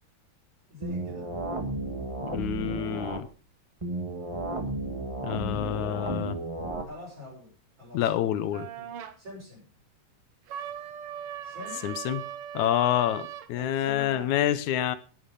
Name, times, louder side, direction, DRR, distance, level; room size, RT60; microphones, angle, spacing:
voice 1, 0.7-1.3 6.9-7.5 7.8-8.1 8.8-8.9 9.2-9.7 11.4-11.9 13.6-14.3, left 2 dB, 45° right, -4 dB, 7.0 m, -44 dB
sound 1, 0.8-3.2 3.8-6.8, right 2 dB, 15° right, 1.0 m, -33 dB
voice 2, 2.2-3.3 5.2-6.4 7.9-8.7 11.8-12.2 12.5-15.0, left 11 dB, 70° left, 14 dB, 2.0 m, -27 dB
sound 2, 8.5-9.2 10.5-13.5, right 10 dB, 75° right, 1.3 m, -39 dB
11.0 x 11.0 x 5.5 m, 0.37 s
omnidirectional pair, 3.8 m